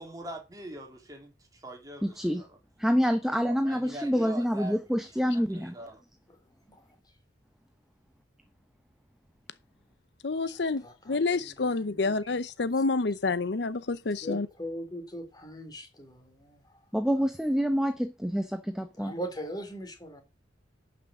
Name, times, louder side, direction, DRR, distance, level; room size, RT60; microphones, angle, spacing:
voice 1, 0.0-2.5 3.4-4.8 5.3-6.0, right 1 dB, 20° right, 2.7 m, -42 dB
voice 2, 2.0-2.4 2.8-5.7 16.9-19.1, equal, ahead, 0.7 m, -27 dB
voice 3, 6.3-7.1 10.5-12.3 14.2-16.8 17.2-17.3 19.0-20.2, equal, 20° left, 3.3 m, -41 dB
voice 4, 10.2-14.5, left 3 dB, 65° left, 0.7 m, -28 dB
11.5 x 6.1 x 7.2 m
head